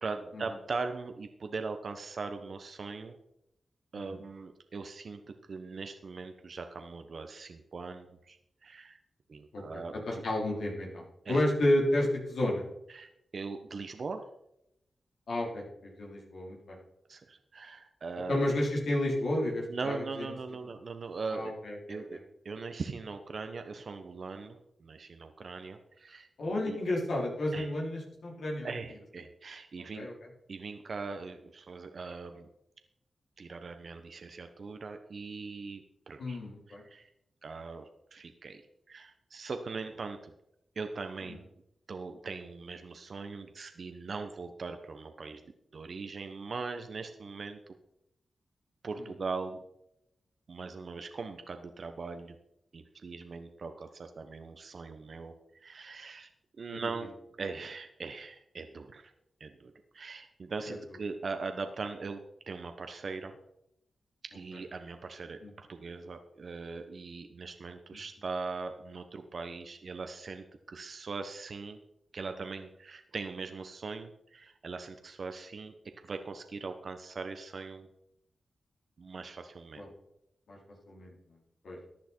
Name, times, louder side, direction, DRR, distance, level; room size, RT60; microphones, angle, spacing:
voice 1, 0.0-3.2 3.9-9.0 9.3-9.9 11.2-11.4 12.9-14.2 17.1-18.4 19.7-21.5 21.9-22.2 22.4-26.3 26.7-26.8 27.5-27.7 28.6-30.1 30.5-32.5 33.4-36.4 36.8-37.1 37.4-38.6 38.9-40.3 40.7-41.4 41.9-45.4 45.7-47.6 48.8-49.6 50.5-52.3 52.7-55.3 55.6-56.3 56.6-57.1 57.4-59.1 59.4-63.4 64.3-71.8 72.1-75.7 76.0-77.9 79.0-79.9, right 4 dB, 65° right, 7 dB, 1.1 m, -40 dB
voice 2, 9.5-12.6 15.3-16.8 18.3-20.3 21.3-22.2 26.4-28.7 29.9-30.1 36.2-36.8 41.3-41.4 49.0-49.1 56.7-56.8 60.7-60.8 65.4-65.5 79.7-79.9 80.5-80.6 80.9-81.1 81.6-81.8, left 1 dB, 80° left, -3 dB, 4.2 m, -31 dB
15.0 x 10.5 x 4.6 m, 0.82 s
cardioid pair, 45°, 0 cm